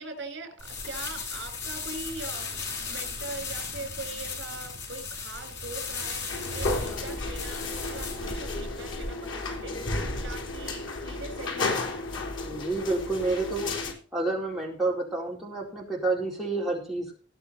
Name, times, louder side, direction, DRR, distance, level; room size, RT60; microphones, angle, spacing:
voice 1, 0.0-2.6 2.9-11.8, right 2 dB, 65° right, 5 dB, 6.4 m, -41 dB
sound 1, 0.6-9.1, left 4 dB, 70° left, 6.3 m, -36 dB
sound 2, 6.3-13.9, left 2 dB, 85° left, 4.1 m, -33 dB
voice 2, 12.4-13.8 14.1-17.2, right 2 dB, ahead, -3 dB, 4.1 m, -29 dB
19.0 x 6.9 x 4.3 m, 0.40 s
head